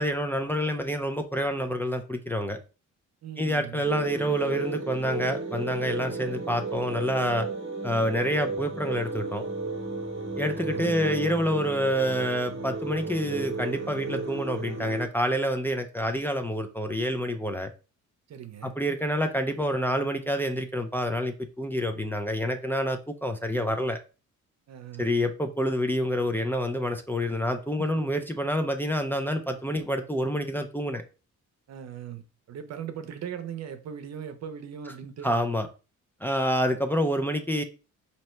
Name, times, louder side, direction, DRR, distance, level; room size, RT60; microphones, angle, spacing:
voice 1, 0.0-2.6 3.4-7.5 7.8-9.4 10.4-17.7 18.6-24.0 25.0-31.0 35.2-35.7 36.2-37.6, equal, 5° left, 0.4 m, -27 dB
voice 2, 3.2-3.9 10.7-10.9 18.3-18.7 24.7-25.1 27.8-27.9 31.7-35.3, right 8 dB, 60° right, 0.7 m, -39 dB
sound 1, 3.8-15.1, right 3 dB, 40° right, 1.1 m, -33 dB
4.3 x 2.8 x 3.1 m
cardioid pair, 90°, 30 cm